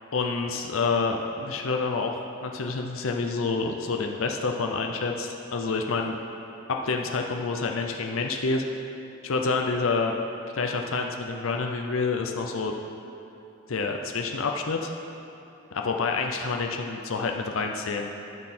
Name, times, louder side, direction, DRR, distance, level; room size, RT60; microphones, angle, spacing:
voice 1, 0.1-6.2 6.7-8.8 9.2-10.2 10.5-12.7 13.7-14.9 15.7-18.1, left 4 dB, 75° left, 2 dB, 0.6 m, -28 dB
13.5 x 6.3 x 4.3 m, 2.7 s
head